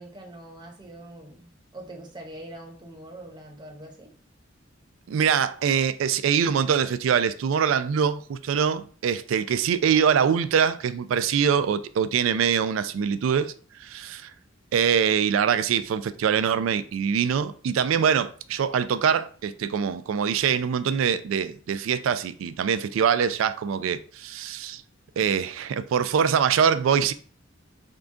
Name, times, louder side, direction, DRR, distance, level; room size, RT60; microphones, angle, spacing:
voice 1, 0.0-4.1, right 1 dB, 25° right, 0.7 m, -43 dB
voice 2, 5.1-13.5 13.8-14.3 14.7-24.8 25.2-27.1, right 7 dB, 80° right, 0.3 m, -24 dB
3.7 x 2.3 x 3.6 m
head